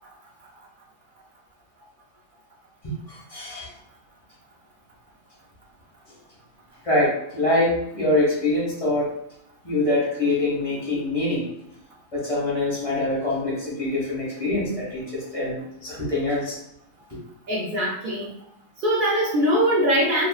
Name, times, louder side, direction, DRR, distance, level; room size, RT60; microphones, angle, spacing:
voice 1, 3.1-3.7 6.8-9.1 9.6-11.4 12.1-16.5, left 2 dB, 25° left, -7 dB, 1.3 m, -24 dB
voice 2, 17.5-18.3 18.8-20.3, equal, 85° right, -3 dB, 0.4 m, -22 dB
3.0 x 2.5 x 2.3 m, 0.78 s
omnidirectional pair, 1.5 m